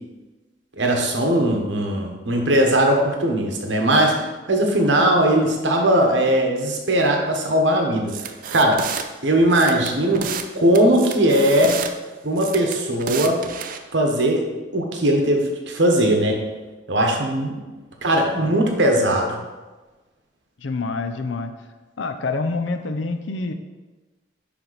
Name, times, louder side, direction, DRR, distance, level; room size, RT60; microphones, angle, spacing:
voice 1, 0.8-8.8 9.2-10.3 10.6-11.8 12.2-13.4 13.9-14.4 14.7-16.4 16.9-17.6 18.0-19.3, right 1 dB, 70° right, 1 dB, 1.1 m, -19 dB
sound 1, 8.1-9.0 9.5-10.5 10.7-11.9 12.4-13.8, right 7 dB, 45° right, 0.4 m, -31 dB
voice 2, 18.1-18.6 19.1-19.5 20.6-21.5 22.0-23.5, left 3 dB, 75° left, 7 dB, 0.6 m, -27 dB
10.0 x 3.5 x 4.0 m, 1.2 s
head